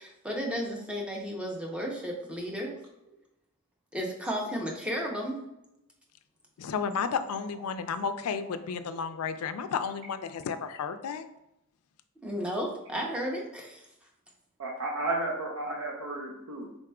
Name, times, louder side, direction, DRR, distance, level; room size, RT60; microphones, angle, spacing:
voice 1, 0.0-2.7 3.9-5.4 12.2-13.9, equal, 5° right, -1 dB, 0.7 m, -33 dB
voice 2, 6.6-11.2, left 6 dB, 75° left, 10 dB, 0.4 m, -32 dB
voice 3, 14.6-16.7, right 2 dB, 85° right, -3 dB, 0.7 m, -33 dB
4.8 x 4.1 x 2.2 m, 0.85 s
head